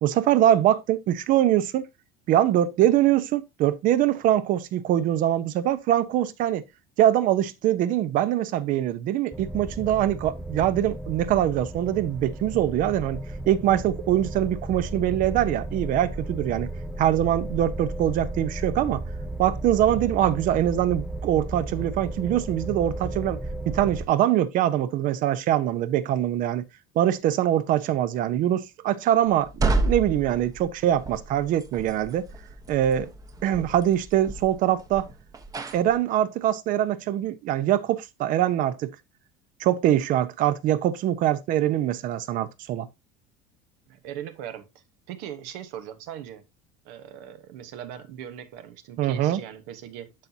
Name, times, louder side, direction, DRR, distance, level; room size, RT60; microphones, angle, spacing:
voice 1, 0.0-1.9 2.3-6.6 7.0-13.2 13.5-16.7 17.0-19.0 19.4-23.4 23.7-26.6 26.9-32.3 32.7-33.1 33.4-35.1 35.7-38.9 39.6-42.9 49.0-49.4, right 12 dB, 55° right, 0.8 m, -23 dB
sound 1, 9.3-24.1, right 1 dB, ahead, 0.7 m, -34 dB
sound 2, 29.3-36.0, right 3 dB, 20° right, 0.9 m, -31 dB
voice 2, 43.9-44.7 45.1-46.4 46.8-50.1, right 10 dB, 75° right, 1.2 m, -39 dB
11.5 x 4.1 x 2.8 m
supercardioid pair, 120°, 16 cm